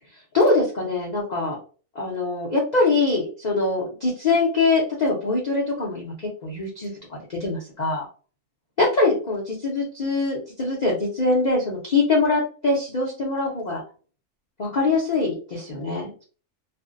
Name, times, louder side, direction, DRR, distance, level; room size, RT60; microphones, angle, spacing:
voice 1, 0.3-1.6 1.9-8.1 8.8-13.8 14.6-16.2, left 3 dB, 70° left, -3 dB, 0.4 m, -23 dB
2.5 x 2.1 x 2.4 m, 0.39 s
omnidirectional pair, 1.6 m